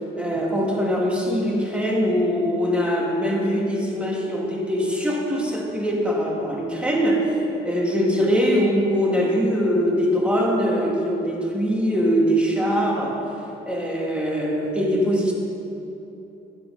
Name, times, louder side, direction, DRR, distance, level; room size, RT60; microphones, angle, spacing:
voice 1, 0.2-7.4 7.6-13.2 13.7-15.3, equal, 5° right, -2 dB, 2.3 m, -22 dB
12.0 x 9.3 x 5.4 m, 3.0 s
cardioid pair, 90°, 20 cm